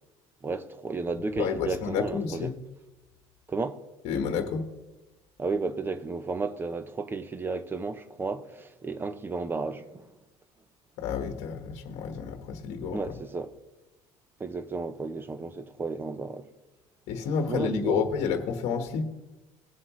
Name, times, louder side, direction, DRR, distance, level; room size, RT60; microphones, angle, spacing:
voice 1, 0.4-2.6 3.5-3.8 5.4-10.1 12.9-13.5 14.4-16.5 17.5-18.0, right 3 dB, 15° right, 0.6 m, -33 dB
voice 2, 1.4-2.5 4.0-4.6 11.0-13.2 17.1-19.0, left 6 dB, 65° left, 1.3 m, -30 dB
19.5 x 7.6 x 3.1 m
cardioid pair, 140°, 12 cm